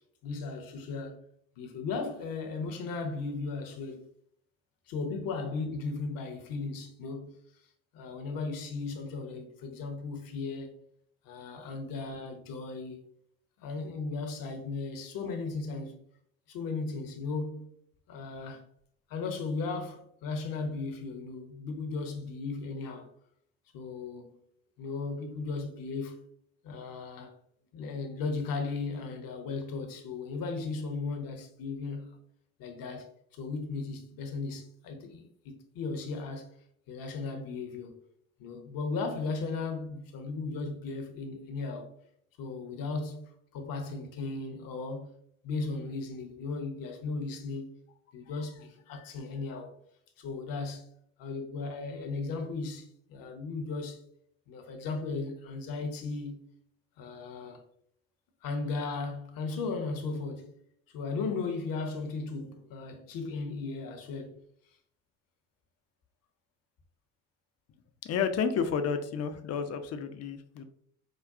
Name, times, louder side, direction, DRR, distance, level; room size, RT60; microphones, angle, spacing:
voice 1, 0.2-1.2 1.6-4.0 4.9-7.4 7.9-10.8 11.2-13.0 13.6-16.0 16.5-17.7 18.1-18.6 19.1-23.1 23.7-24.4 24.8-26.3 26.6-27.3 27.7-32.2 32.6-36.5 36.9-37.9 38.4-41.9 42.4-45.1 45.4-47.7 48.1-49.7 50.2-50.9 51.2-54.0 54.5-56.5 57.0-57.6 58.4-60.6 60.9-64.4, left 4 dB, 55° left, 0.9 m, -36 dB
voice 2, 68.0-70.6, left 6 dB, 40° left, 0.5 m, -31 dB
5.0 x 2.3 x 2.4 m
hypercardioid pair, 60°, 41 cm